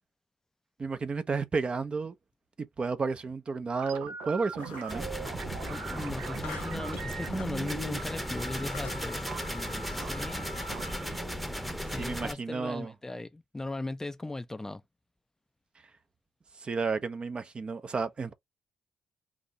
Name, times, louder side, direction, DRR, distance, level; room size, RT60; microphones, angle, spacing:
voice 1, 0.8-2.1 2.6-5.0 11.8-12.9 16.6-18.3, right 4 dB, 40° right, 0.8 m, -32 dB
sound 1, 3.8-12.7, right 6 dB, 75° right, 0.8 m, -42 dB
sound 2, 4.6-5.1 6.4-7.6 8.1-8.2 8.7-9.1, left 9 dB, 75° left, 0.6 m, -46 dB
sound 3, 4.9-12.3, equal, ahead, 1.0 m, -36 dB
voice 2, 5.7-9.2 9.5-10.5 11.9-14.8, left 2 dB, 20° left, 0.5 m, -38 dB
4.1 x 2.8 x 2.9 m
hypercardioid pair, 40°, 3 cm